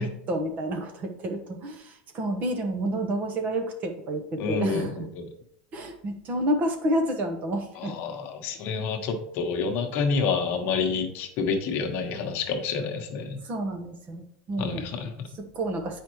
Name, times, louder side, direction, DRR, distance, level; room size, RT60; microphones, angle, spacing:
voice 1, 0.0-5.1 5.7-7.9 13.4-14.9 15.4-16.0, right 1 dB, 35° right, 5 dB, 1.0 m, -30 dB
voice 2, 4.4-5.3 7.8-13.4 14.6-15.3, left 5 dB, 50° left, 4 dB, 1.1 m, -28 dB
8.2 x 5.2 x 3.1 m, 0.75 s
supercardioid pair, 135°, 5 cm